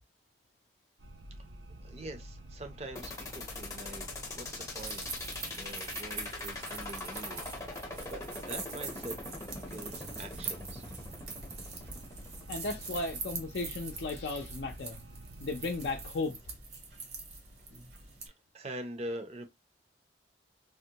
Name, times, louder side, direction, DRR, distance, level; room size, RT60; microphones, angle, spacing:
sound 1, 1.0-16.1, right 1 dB, 90° right, 0.7 m, -49 dB
voice 1, 1.8-5.1 5.5-7.4 7.8-8.2 8.5-9.2 9.7-10.8 18.5-19.5, right 1 dB, 35° right, 0.5 m, -44 dB
sound 2, 3.0-13.0, left 2 dB, 15° left, 0.6 m, -42 dB
sound 3, 4.7-18.3, right 4 dB, 60° right, 0.9 m, -44 dB
voice 2, 12.5-15.0 15.4-16.4, left 3 dB, 65° left, 0.5 m, -35 dB
3.5 x 2.1 x 2.8 m
head